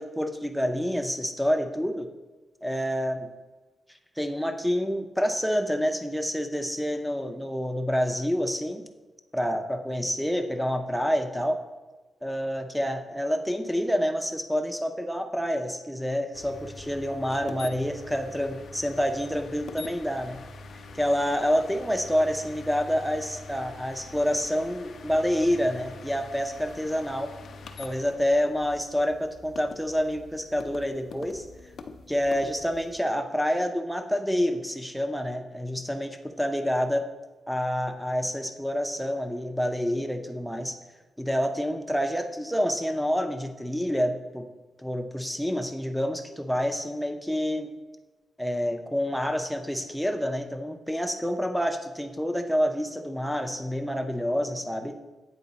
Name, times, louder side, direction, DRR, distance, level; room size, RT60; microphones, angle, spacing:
voice 1, 0.0-2.1 2.6-3.3 4.2-8.9 9.3-11.6 12.2-20.4 20.9-27.3 27.8-31.5 32.1-37.1 37.5-40.8 41.2-44.4 44.8-47.7 48.4-55.0, equal, ahead, 6 dB, 0.6 m, -28 dB
sound 1, 16.3-33.0, left 3 dB, 65° left, 0.5 m, -45 dB
8.4 x 3.9 x 4.0 m, 1.2 s
cardioid pair, 95°, 0 cm